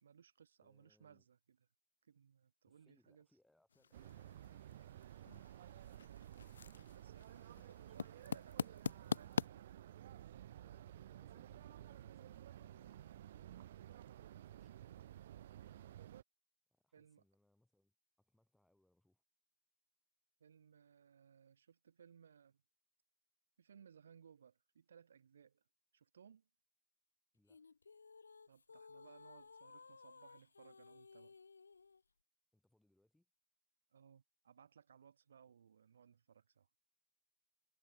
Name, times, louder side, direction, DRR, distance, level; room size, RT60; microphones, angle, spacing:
voice 1, 0.0-1.6 2.0-3.3 6.1-6.5 6.8-9.7 16.9-17.2 20.4-22.6 23.6-25.6 25.9-26.5 28.5-31.3 33.9-36.7, right 7 dB, 55° right, 1.6 m, -64 dB
voice 2, 0.6-1.3 2.7-5.3 7.6-7.9 10.6-13.7 14.3-16.0 16.7-19.2 27.3-27.6 32.5-33.3 35.4-35.5, left 1 dB, ahead, 5.4 m, -77 dB
sound 1, 3.7-9.5, left 6 dB, 65° left, 0.4 m, -45 dB
sound 2, 3.9-16.2, right 12 dB, 40° right, 0.5 m, -54 dB
sound 3, 27.5-32.0, left 4 dB, 80° left, 1.3 m, -59 dB
hypercardioid pair, 160°, 0 cm